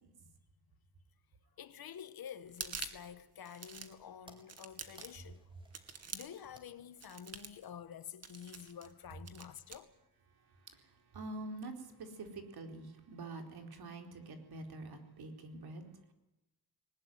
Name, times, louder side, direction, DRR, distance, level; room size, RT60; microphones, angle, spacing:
voice 1, 1.6-5.4 5.9-9.9, left 8 dB, 65° left, 1.8 m, -49 dB
sound 1, 2.5-3.1 3.5-4.0 4.5-5.3 5.7-6.5 7.0-7.6 8.2-8.9 9.3-9.8, right 5 dB, 40° right, 2.3 m, -46 dB
sound 2, 3.1-8.4, right 1 dB, 15° right, 4.6 m, -65 dB
voice 2, 10.3-16.1, right 2 dB, 70° right, 4.4 m, -47 dB
20.5 x 20.0 x 9.5 m
wide cardioid pair, 130°, 39 cm